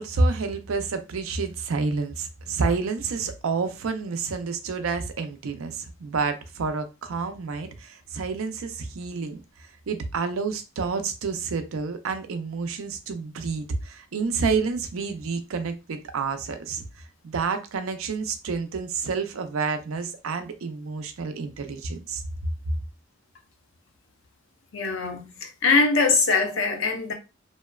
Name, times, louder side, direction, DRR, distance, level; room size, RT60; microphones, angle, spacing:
voice 1, 0.0-9.4 9.9-16.8 17.2-22.2, right 4 dB, 85° right, 0.5 m, -29 dB
voice 2, 24.7-27.1, left 4 dB, 70° left, 0.6 m, -22 dB
2.8 x 2.1 x 2.2 m
head